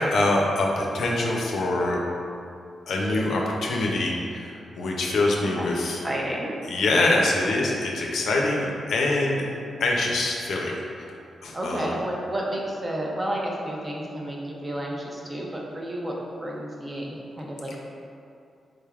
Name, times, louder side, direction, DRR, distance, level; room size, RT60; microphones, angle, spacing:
voice 1, 0.0-2.0 2.9-6.0 6.7-9.4 9.8-11.2 11.4-11.9, left 2 dB, 80° left, -1 dB, 0.5 m, -24 dB
voice 2, 6.0-6.5 11.5-17.8, right 1 dB, 20° right, -2 dB, 0.5 m, -31 dB
3.7 x 3.3 x 2.3 m, 2.5 s
wide cardioid pair, 120°, 0 cm